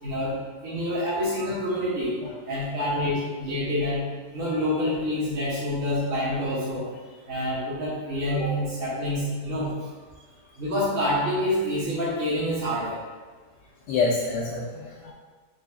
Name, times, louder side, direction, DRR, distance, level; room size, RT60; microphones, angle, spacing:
voice 1, 0.0-2.2 2.5-4.0 4.3-6.9 7.3-9.8 10.6-13.0, left 1 dB, 40° right, -10 dB, 1.2 m, -27 dB
voice 2, 2.2-2.6 13.9-15.1, left 4 dB, 85° left, -5 dB, 1.2 m, -27 dB
4.1 x 3.1 x 3.5 m, 1.3 s
omnidirectional pair, 1.8 m